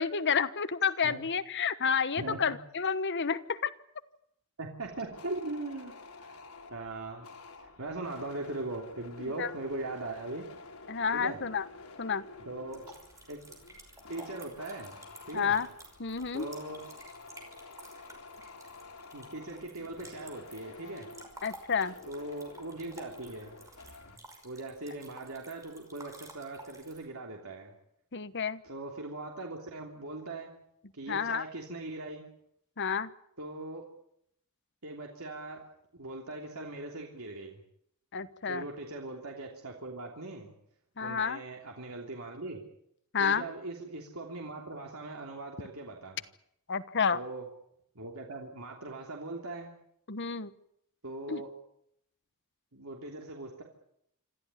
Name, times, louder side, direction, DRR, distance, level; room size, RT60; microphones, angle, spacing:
voice 1, 0.0-3.7 9.2-9.5 10.9-11.7 12.0-12.2 15.3-15.7 16.0-16.5 21.4-21.9 28.1-28.6 31.1-31.5 32.8-33.1 38.1-38.6 41.0-41.4 43.1-43.4 46.7-47.2 50.1-50.5 51.3-51.4, left 6 dB, 55° left, 13 dB, 1.2 m, -30 dB
voice 2, 4.6-5.9 6.2-6.4 6.7-7.3 7.6-10.5 11.1-11.4 12.4-12.8 13.3-13.4 14.1-15.0 15.2-15.6 16.3-16.8 19.1-21.1 22.1-23.6 24.4-27.7 28.6-30.5 30.9-32.2 33.4-33.8 34.8-35.6 35.9-37.6 38.5-40.5 41.0-42.6 43.2-46.2 47.1-47.4 47.9-49.7 51.0-51.5 52.7-53.6, right 2 dB, 75° right, 1 dB, 3.3 m, -40 dB
sound 1, 4.8-24.2, left 3 dB, 85° left, 3.5 m, -50 dB
sound 2, 12.7-27.1, right 2 dB, 15° right, 5.6 m, -53 dB
26.5 x 14.5 x 9.9 m, 0.74 s
head